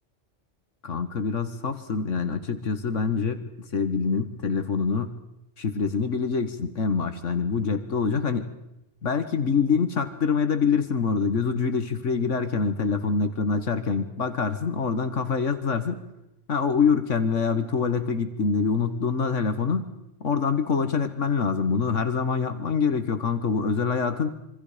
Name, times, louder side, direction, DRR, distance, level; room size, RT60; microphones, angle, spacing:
voice 1, 0.8-3.4 3.7-5.1 5.6-8.5 9.0-16.0 16.5-19.9 20.2-24.3, left 5 dB, 80° left, 9 dB, 1.9 m, -25 dB
27.0 x 25.0 x 5.1 m, 0.87 s
omnidirectional pair, 1.3 m